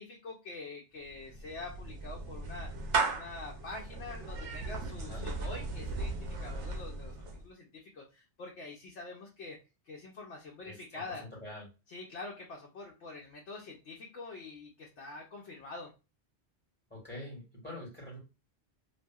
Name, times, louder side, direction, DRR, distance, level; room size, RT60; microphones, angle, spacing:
voice 1, 0.0-2.7 3.1-9.6 9.8-11.3 11.9-15.9, left 3 dB, 75° left, -1 dB, 0.9 m, -45 dB
Clapping / Meow, 1.0-7.5, right 3 dB, 85° right, 0.9 m, -37 dB
voice 2, 10.6-11.0 11.4-11.7 16.9-18.2, left 1 dB, 10° left, -5 dB, 1.6 m, -45 dB
2.7 x 2.6 x 2.3 m, 0.29 s
omnidirectional pair, 1.2 m